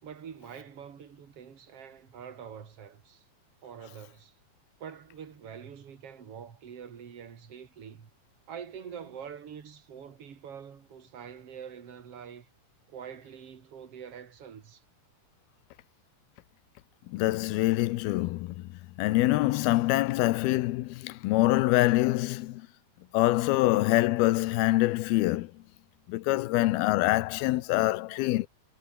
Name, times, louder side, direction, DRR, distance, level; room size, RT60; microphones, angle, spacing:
voice 1, 0.0-3.2 3.6-4.3 4.8-8.1 8.5-12.5 12.9-14.8, right 7 dB, 45° right, 2.9 m, -45 dB
voice 2, 17.1-18.7 19.0-22.7 23.1-25.5 26.1-28.5, left 18 dB, 85° left, 2.7 m, -25 dB
omnidirectional pair, 4.3 m